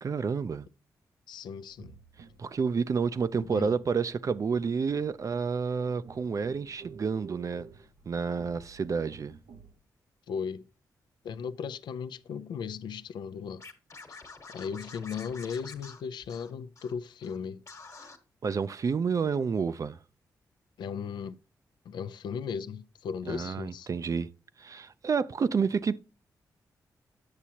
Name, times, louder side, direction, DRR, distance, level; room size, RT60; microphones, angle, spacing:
voice 1, 0.0-0.7 2.4-7.7 8.1-9.4 18.4-20.0 23.3-24.3 24.6-26.0, right 5 dB, 45° right, 0.4 m, -29 dB
voice 2, 1.3-2.0 3.4-3.7 10.3-10.7 11.2-13.6 14.5-17.6 20.8-21.4 21.8-23.9, left 6 dB, 80° left, 0.4 m, -36 dB
sound 1, 1.7-9.8, right 5 dB, 80° right, 0.7 m, -52 dB
Scratching (performance technique), 13.6-16.9 17.2-17.4 17.7-18.2, left 4 dB, 45° left, 1.3 m, -48 dB
8.4 x 6.1 x 2.8 m
cardioid pair, 60°, 7 cm